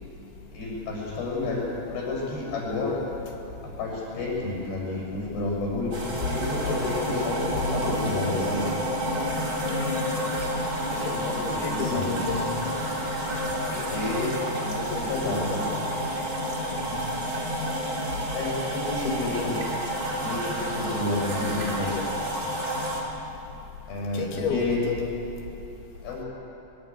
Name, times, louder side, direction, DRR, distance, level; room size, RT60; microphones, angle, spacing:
voice 1, 0.5-1.6 1.9-3.0 3.6-6.0 6.3-8.7 10.9-12.1 13.6-14.3 14.6-15.7 18.3-19.5 20.2-22.0 23.9-24.8 26.0-26.2, left 2 dB, 90° left, -3 dB, 8.8 m, -30 dB
sound 1, 5.9-23.0, equal, 25° right, 3.0 m, -29 dB
voice 2, 9.7-10.1 10.9-12.6 16.7-17.0 19.0-19.3 24.1-25.1, left 5 dB, 70° left, 1 dB, 4.2 m, -31 dB
22.5 x 21.0 x 8.5 m, 2.9 s
omnidirectional pair, 4.6 m